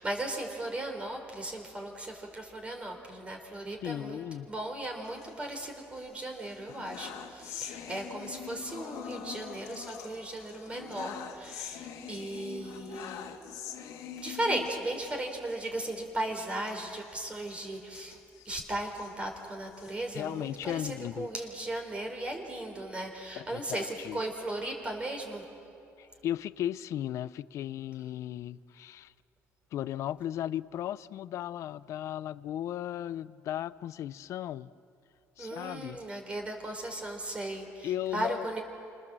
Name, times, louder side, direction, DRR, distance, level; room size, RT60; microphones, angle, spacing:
voice 1, 0.0-13.4 14.2-18.2 18.4-25.4 35.4-38.6, right 1 dB, 20° right, 3 dB, 3.9 m, -37 dB
voice 2, 3.8-4.5 20.1-21.3 23.4-24.2 26.0-29.1 29.7-34.7 35.4-36.0 37.8-38.5, left 11 dB, 60° left, 17 dB, 0.6 m, -36 dB
sound 1, 5.1-6.0 6.4-15.2 15.5-15.7 15.9-16.1 16.6-19.1 19.6-21.0, left 8 dB, 85° left, 2.3 m, -44 dB
29.0 x 26.5 x 7.5 m, 2.6 s
cardioid pair, 145°, 6 cm